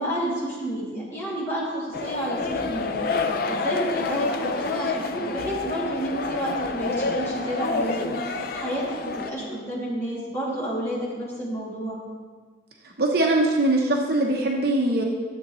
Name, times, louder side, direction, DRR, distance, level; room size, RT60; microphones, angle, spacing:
voice 1, 0.0-12.0, right 1 dB, 15° left, -9 dB, 2.5 m, -30 dB
sound 1, 1.9-9.3, left 3 dB, 50° left, 0.4 m, -28 dB
voice 2, 13.0-15.0, right 2 dB, 50° right, 0 dB, 0.9 m, -21 dB
12.5 x 7.7 x 3.1 m, 1.5 s
head